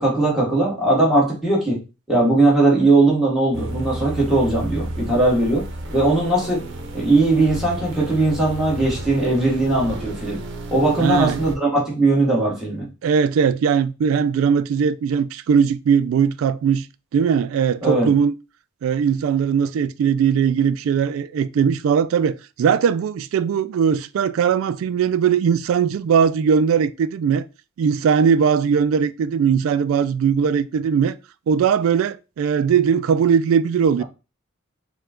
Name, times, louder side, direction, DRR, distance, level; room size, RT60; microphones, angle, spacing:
voice 1, 0.0-1.8 2.1-6.7 6.9-10.4 10.7-12.9 17.8-18.1, right 2 dB, ahead, 1.7 m, -19 dB
sound 1, 3.5-11.6, right 1 dB, 60° right, 0.8 m, -32 dB
voice 2, 11.0-11.4 13.0-16.9 17.1-18.3 18.8-27.4 27.8-31.2 31.5-34.0, right 7 dB, 80° right, 0.3 m, -19 dB
4.6 x 2.3 x 3.6 m
head